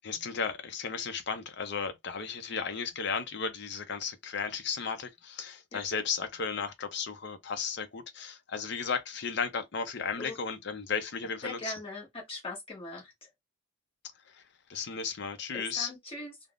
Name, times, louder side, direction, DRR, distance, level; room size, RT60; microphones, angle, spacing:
voice 1, 0.0-11.7 14.7-15.9, left 5 dB, 55° left, 0.6 m, -34 dB
voice 2, 11.4-13.3 15.5-16.3, left 2 dB, 25° left, 1.2 m, -40 dB
3.4 x 2.0 x 2.4 m
head